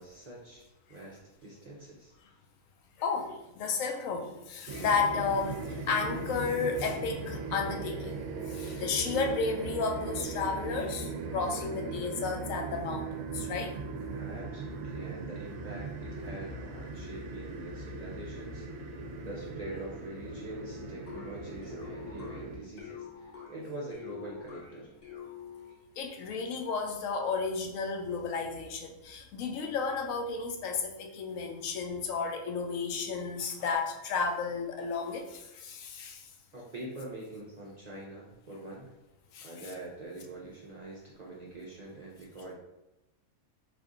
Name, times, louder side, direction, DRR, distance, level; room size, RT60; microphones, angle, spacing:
voice 1, 0.0-2.1 14.1-24.9 36.5-38.9 39.4-42.5, right 1 dB, 55° right, -5 dB, 0.4 m, -44 dB
voice 2, 3.0-13.1 13.3-13.8 26.0-36.3 39.3-39.5, left 5 dB, 70° left, 3 dB, 0.9 m, -33 dB
sound 1, 4.7-22.6, right 4 dB, 70° right, 0.8 m, -39 dB
sound 2, 21.1-25.9, left 7 dB, 45° left, 1.0 m, -46 dB
3.3 x 2.4 x 3.8 m, 0.92 s
omnidirectional pair, 1.5 m